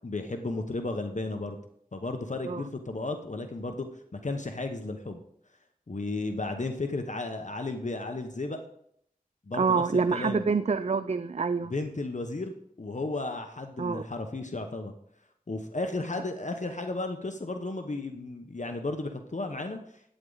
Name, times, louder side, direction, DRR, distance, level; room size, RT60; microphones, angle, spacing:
voice 1, 0.0-1.6 1.9-5.2 5.9-8.6 9.5-10.4 11.7-14.9 15.5-20.0, left 2 dB, 55° left, 5 dB, 1.0 m, -34 dB
voice 2, 9.5-11.7 13.8-14.0, right 5 dB, 45° right, 12 dB, 0.4 m, -26 dB
11.5 x 9.2 x 3.9 m, 0.69 s
wide cardioid pair, 55°, 15 cm